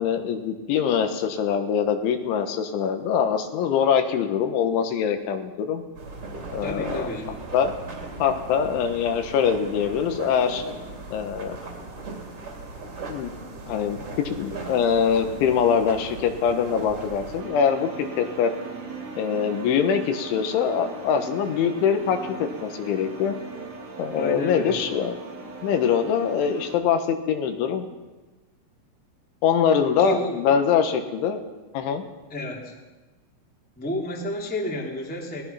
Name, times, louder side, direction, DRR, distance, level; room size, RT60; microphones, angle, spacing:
voice 1, 0.0-5.8 6.5-7.1 7.5-7.7 8.2-10.6 11.1-11.6 13.1-13.3 13.7-14.0 14.3-18.5 19.2-23.4 24.0-25.2 25.6-27.9 29.4-31.4 31.7-32.0, left 7 dB, 80° left, 6 dB, 3.8 m, -23 dB
sound 1, 5.9-17.4, right 3 dB, 35° right, 3.6 m, -38 dB
voice 2, 6.6-7.3 24.1-24.8 30.0-30.4 32.3-32.7 33.7-35.4, left 1 dB, 5° left, -1 dB, 1.7 m, -30 dB
sound 2, 17.4-26.8, right 4 dB, 75° right, 5.4 m, -39 dB
24.0 x 18.5 x 5.8 m, 1.2 s
omnidirectional pair, 5.5 m